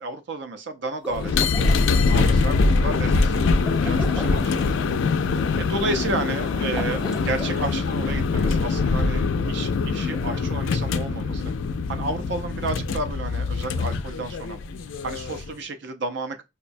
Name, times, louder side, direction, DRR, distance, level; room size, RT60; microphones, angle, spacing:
voice 1, 0.0-1.7 2.1-4.7 5.6-11.4 11.9-14.6 15.0-16.4, right 2 dB, 65° right, 0.5 m, -32 dB
sound 1, 0.9-1.8 3.6-4.5 6.6-7.7, equal, 5° right, 0.3 m, -37 dB
sound 2, 1.1-15.5, left 4 dB, 80° left, 0.3 m, -23 dB
4.6 x 2.1 x 2.5 m
head